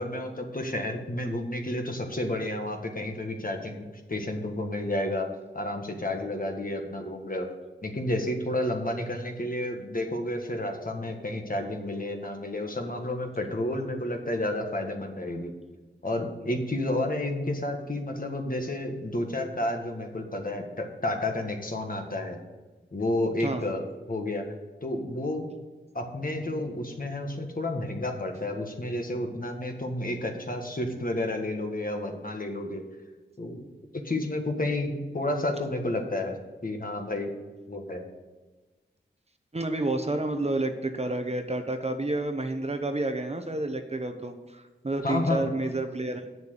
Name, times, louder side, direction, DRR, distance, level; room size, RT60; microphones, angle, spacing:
voice 1, 0.0-5.3 5.5-7.5 7.8-15.5 16.0-22.4 22.9-23.8 24.1-24.4 24.8-25.5 25.9-32.8 33.4-33.7 34.0-36.4 36.6-37.3 37.7-38.0 45.0-45.5, left 1 dB, 45° left, 3 dB, 1.7 m, -31 dB
voice 2, 39.5-46.3, right 2 dB, 35° right, 6 dB, 1.0 m, -30 dB
8.2 x 7.0 x 6.8 m, 1.2 s
wide cardioid pair, 65°, 20 cm